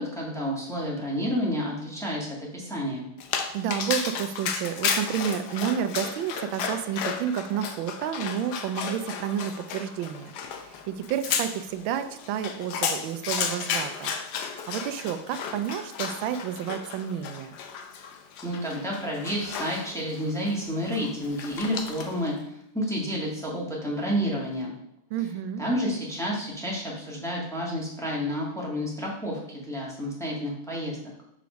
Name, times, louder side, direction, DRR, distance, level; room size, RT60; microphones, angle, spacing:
voice 1, 0.0-3.1 18.4-24.7 25.6-31.0, equal, ahead, -4 dB, 1.6 m, -30 dB
Dog, 3.2-22.3, left 6 dB, 65° left, 1.2 m, -33 dB
voice 2, 3.5-14.1 14.4-17.6 25.1-25.6, right 9 dB, 85° right, 10 dB, 1.4 m, -30 dB
5.8 x 4.9 x 5.1 m, 0.76 s
omnidirectional pair, 2.1 m